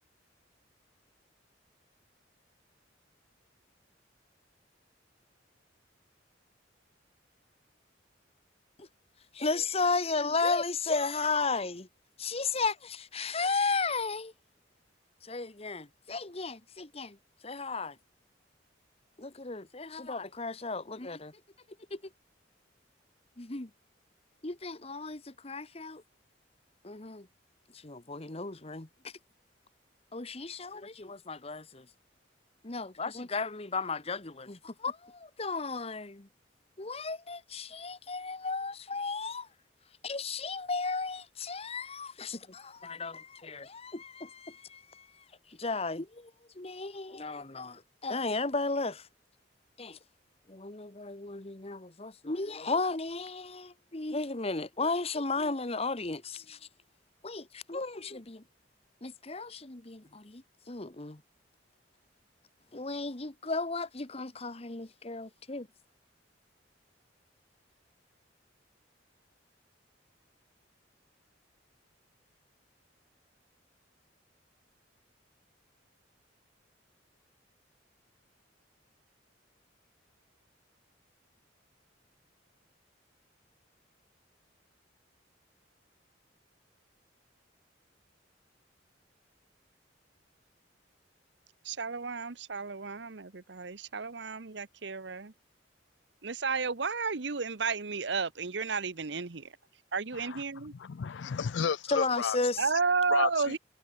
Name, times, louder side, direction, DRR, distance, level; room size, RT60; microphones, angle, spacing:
voice 1, 9.3-11.9 12.2-14.3 15.2-17.2 17.4-18.0 19.2-21.3 21.9-22.0 23.4-23.7 24.4-26.0 26.8-27.3 27.8-29.1 30.1-31.9 32.6-36.3 36.8-39.5 40.0-45.1 45.6-49.1 49.8-50.0 50.5-56.6 57.2-58.4 59.0-60.4 60.7-61.2 62.7-65.7 101.9-102.6, left 3 dB, 30° left, 1.3 m, -34 dB
voice 2, 91.6-95.3 96.2-99.6 99.9-100.7 102.6-103.6, right 4 dB, 65° right, 1.0 m, -32 dB
voice 3, 100.8-102.4 103.1-103.5, left 6 dB, 75° left, 0.4 m, -32 dB
head